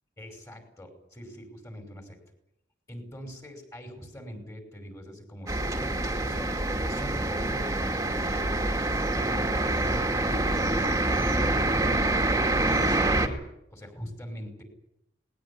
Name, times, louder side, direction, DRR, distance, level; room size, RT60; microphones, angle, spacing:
voice 1, 0.2-2.2 2.9-5.7 6.2-6.6 6.9-8.6 9.1-12.2 12.7-14.6, equal, 20° left, 5 dB, 5.4 m, -43 dB
sound 1, 5.5-13.3, right 2 dB, 20° right, 2.3 m, -26 dB
20.0 x 19.5 x 9.8 m, 0.82 s
head